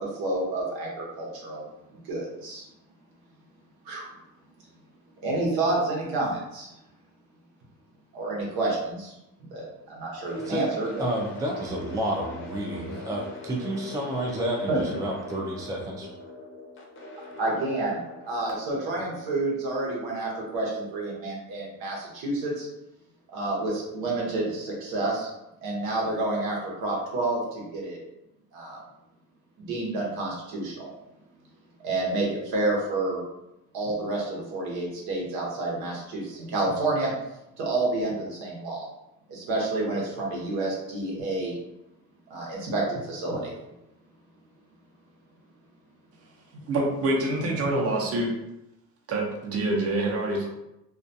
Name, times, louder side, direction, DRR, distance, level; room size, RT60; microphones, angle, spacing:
voice 1, 0.0-1.6 1.9-2.6 3.8-4.1 5.2-6.7 8.1-9.1 9.5-11.0 14.7-14.8 17.4-18.0 18.3-22.7 23.3-25.3 25.6-28.0 28.5-28.8 29.6-30.9 31.8-33.2 33.7-37.1 37.6-38.9 39.3-41.5 42.3-43.5, right 2 dB, 90° right, -2 dB, 0.9 m, -29 dB
sound 1, 10.3-20.3, left 1 dB, 35° left, 0.6 m, -42 dB
voice 2, 11.0-16.1 47.6-47.7, right 1 dB, 10° right, 0 dB, 0.3 m, -30 dB
voice 3, 46.7-48.3 49.1-50.5, right 2 dB, 45° right, -1 dB, 0.7 m, -26 dB
2.4 x 2.3 x 2.6 m, 0.88 s
cardioid pair, 115°, 35 cm